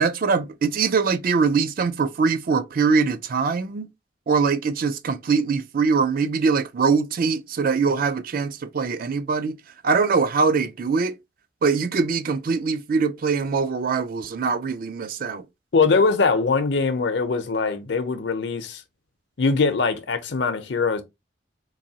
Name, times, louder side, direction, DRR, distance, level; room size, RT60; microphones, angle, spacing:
voice 1, 0.0-3.9 4.3-9.5 9.8-11.1 11.6-15.4, right 5 dB, 50° right, 0.4 m, -22 dB
voice 2, 15.7-18.8 19.4-21.0, left 4 dB, 65° left, 0.6 m, -22 dB
3.9 x 2.6 x 2.8 m
head